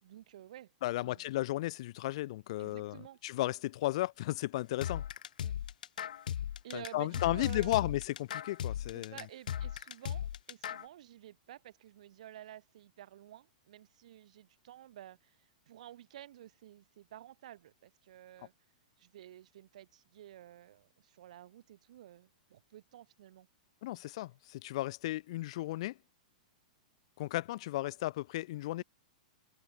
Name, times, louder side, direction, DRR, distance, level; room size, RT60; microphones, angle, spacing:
voice 1, 0.0-0.7 1.0-1.4 2.6-3.2 5.4-5.5 6.6-8.0 8.9-18.5 19.0-23.5, right 12 dB, 60° right, 3.8 m, -52 dB
voice 2, 0.8-5.0 6.7-9.1 23.8-26.0 27.2-28.8, left 16 dB, 45° left, 1.0 m, -34 dB
sound 1, 4.8-10.9, left 10 dB, 80° left, 2.0 m, -37 dB
supercardioid pair, 170°, 4 cm